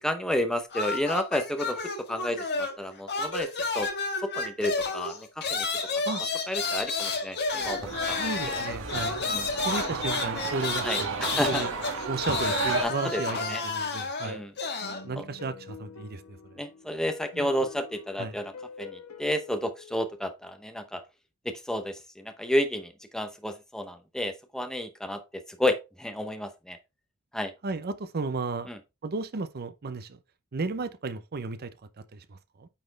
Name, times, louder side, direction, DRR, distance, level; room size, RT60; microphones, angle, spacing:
voice 1, 0.0-1.8 2.1-2.5 2.8-3.5 3.7-3.9 4.4-5.7 6.5-8.2 8.5-8.6 9.3-9.4 10.8-11.7 12.8-13.2 13.5-13.6 14.2-14.5 15.2-15.3 16.6-18.5 18.8-21.0 21.4-25.2 25.6-26.8 27.3-27.5 28.7-28.8, left 1 dB, 5° left, 0.7 m, -31 dB
sound 1, 0.7-2.8 3.1-15.0, left 4 dB, 50° left, 1.4 m, -31 dB
sound 2, 7.6-12.8, right 4 dB, 60° right, 1.3 m, -33 dB
voice 2, 8.2-9.2 9.6-11.1 11.5-11.7 12.1-14.4 15.0-16.4 17.3-17.5 18.2-18.4 27.6-28.7 29.0-30.2 30.5-32.7, right 3 dB, 45° right, 0.6 m, -34 dB
sound 3, 14.8-20.1, left 5 dB, 75° left, 1.0 m, -47 dB
9.0 x 4.2 x 3.3 m
head